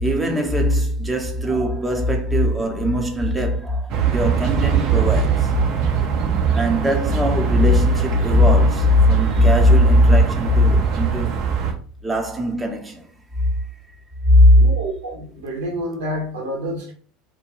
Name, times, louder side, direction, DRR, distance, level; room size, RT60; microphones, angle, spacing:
voice 1, 0.0-5.5 6.5-11.4 12.0-13.0 14.3-14.6, left 1 dB, 15° right, 0.7 m, -18 dB
sound 1, 3.9-11.7, right 7 dB, 60° right, 0.6 m, -22 dB
voice 2, 14.5-16.9, equal, 80° right, 0.9 m, -28 dB
2.4 x 2.1 x 2.9 m
hypercardioid pair, 80°, 0 cm